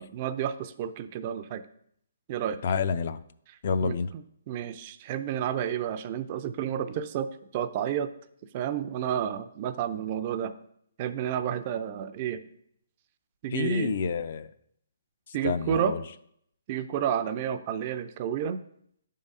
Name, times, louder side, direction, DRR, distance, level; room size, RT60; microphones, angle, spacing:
voice 1, 0.0-1.7 2.3-2.6 3.8-8.1 8.5-10.5 11.0-12.4 13.4-14.0 15.3-16.0 16.7-18.6, right 9 dB, 35° right, 10 dB, 0.4 m, -31 dB
voice 2, 2.6-3.2 3.6-4.1 13.5-14.5 15.4-16.0, left 5 dB, 50° left, 12 dB, 0.4 m, -28 dB
8.7 x 3.7 x 5.3 m, 0.68 s
hypercardioid pair, 160°, 0 cm